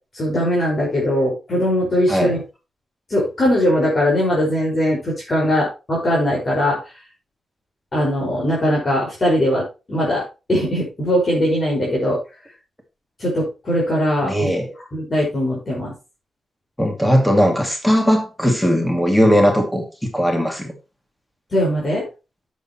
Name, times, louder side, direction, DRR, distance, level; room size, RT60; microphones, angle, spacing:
voice 1, 0.1-2.4 3.1-6.8 7.9-12.2 13.2-14.5 14.9-15.9 21.5-22.0, equal, 35° left, 5.3 m, -20 dB
voice 2, 14.2-14.7 16.8-20.7, equal, 5° left, 2.5 m, -18 dB
10.5 x 8.4 x 3.1 m
wide cardioid pair, 120°, 0 cm